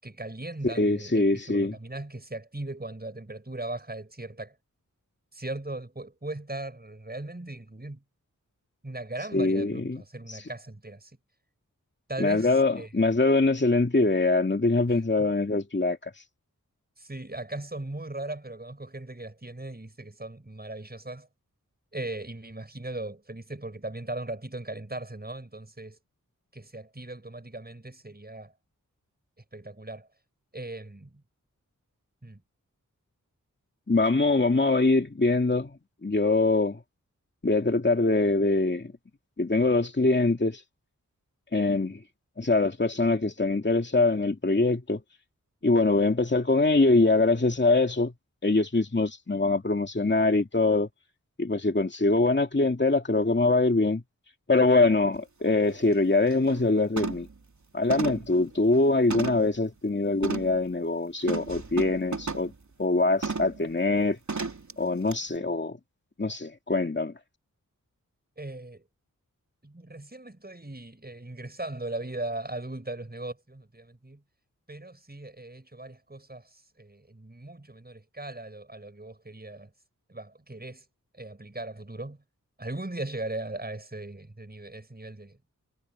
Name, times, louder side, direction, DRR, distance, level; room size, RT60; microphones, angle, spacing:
voice 1, 0.0-4.5 5.3-8.0 8.8-11.2 12.1-12.9 15.2-15.3 17.0-21.3 21.9-26.0 26.5-28.5 29.5-30.1 30.5-31.2 32.2-32.4 68.4-68.8 69.6-74.2 74.7-79.7 80.1-80.8 81.1-82.2 82.6-85.4, right 2 dB, 30° right, 7.0 m, -38 dB
voice 2, 0.6-1.8 9.3-10.0 10.3-10.4 12.2-16.1 33.9-36.8 37.4-38.9 39.4-40.6 41.5-42.0 42.4-45.0 45.6-48.1 48.4-50.9 51.4-54.0 54.5-57.3 57.7-62.5 62.8-64.2 64.8-65.8 66.2-67.1, left 3 dB, 35° left, 2.4 m, -23 dB
sound 1, 55.2-55.3 55.7-55.9 56.3-56.6 57.0-57.4 57.9-59.6 60.2-60.6 61.3-62.6 63.2-63.6 64.3-64.7 65.1-65.2, right 4 dB, 60° right, 3.3 m, -34 dB
cardioid pair, 40°, 33 cm